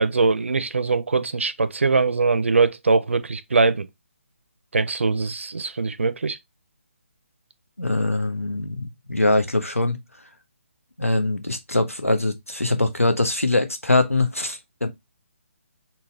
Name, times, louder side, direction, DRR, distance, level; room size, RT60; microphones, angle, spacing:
voice 1, 0.0-3.9 4.7-6.4, right 4 dB, 65° right, 0.5 m, -22 dB
voice 2, 7.8-10.0 11.0-14.9, left 2 dB, 90° left, 0.9 m, -22 dB
4.1 x 2.3 x 3.6 m
figure-of-eight pair, 145°, 7 cm